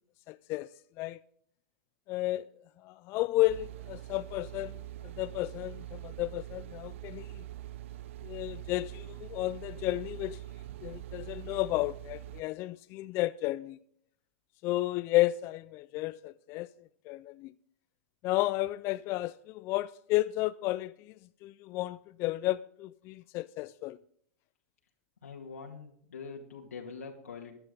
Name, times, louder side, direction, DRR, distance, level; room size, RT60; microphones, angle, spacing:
voice 1, 0.3-0.7 1.0-1.2 2.1-2.5 2.8-7.4 8.2-10.4 10.8-13.8 14.6-16.7 17.1-17.5 18.2-21.1 21.4-24.0, left 17 dB, 35° left, 0.3 m, -32 dB
sound 1, 3.5-12.4, right 14 dB, 60° right, 0.4 m, -44 dB
voice 2, 25.2-27.6, left 5 dB, 90° left, 2.0 m, -44 dB
15.0 x 11.0 x 3.8 m
hypercardioid pair, 125°, 8 cm